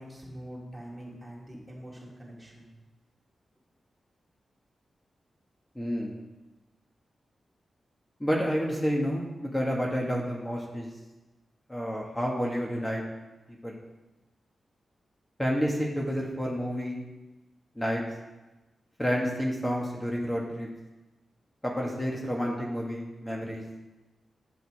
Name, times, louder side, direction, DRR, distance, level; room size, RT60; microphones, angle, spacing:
voice 1, 0.0-2.7, equal, 5° right, -4 dB, 3.1 m, -44 dB
voice 2, 5.8-6.2 8.2-10.9 11.7-13.0 13.6-13.7 15.4-17.1 17.8-18.0 19.0-20.7 21.6-23.6, equal, 15° left, -2 dB, 1.8 m, -29 dB
9.1 x 5.6 x 4.9 m, 1.1 s
cardioid pair, 45°, 0 cm